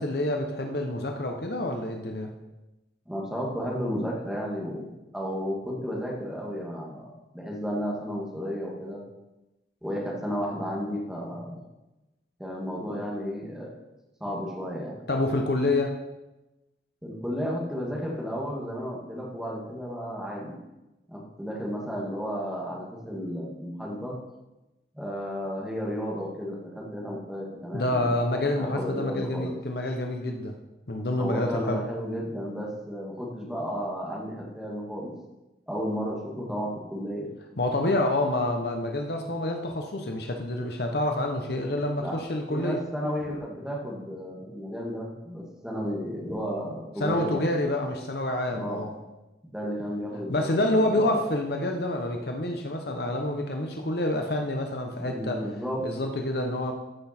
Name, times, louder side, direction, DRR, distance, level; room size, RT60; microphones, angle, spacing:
voice 1, 0.0-2.3 15.1-15.9 27.7-30.6 30.9-31.8 37.6-42.8 47.0-48.9 50.3-55.4 55.8-56.7, left 1 dB, 60° left, 3 dB, 1.0 m, -27 dB
voice 2, 3.1-4.9 5.1-7.1 7.3-9.0 9.8-11.6 12.4-13.7 14.2-15.0 17.0-20.6 21.1-24.2 24.9-28.1 28.6-29.5 31.2-35.1 35.7-37.3 41.7-42.2 42.5-47.5 48.5-48.8 49.4-51.1 55.0-55.9, equal, 5° right, -3 dB, 2.0 m, -33 dB
14.0 x 6.1 x 4.4 m, 1.0 s
head